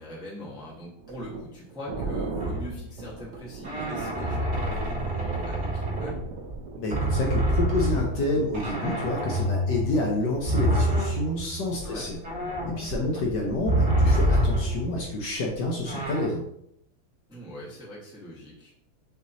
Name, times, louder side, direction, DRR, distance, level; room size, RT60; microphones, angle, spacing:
voice 1, 0.0-6.2 11.8-12.1 17.3-18.7, equal, 5° right, -6 dB, 0.8 m, -41 dB
sound 1, 0.7-8.9, right 3 dB, 85° right, 1.7 m, -38 dB
sound 2, 2.4-3.0 3.6-6.6 6.9-15.1 15.9-16.3, equal, 55° right, 2.3 m, -27 dB
voice 2, 6.8-12.2 12.8-16.4, left 2 dB, 65° left, -1 dB, 1.2 m, -28 dB
6.1 x 2.8 x 2.7 m, 0.72 s
omnidirectional pair, 2.3 m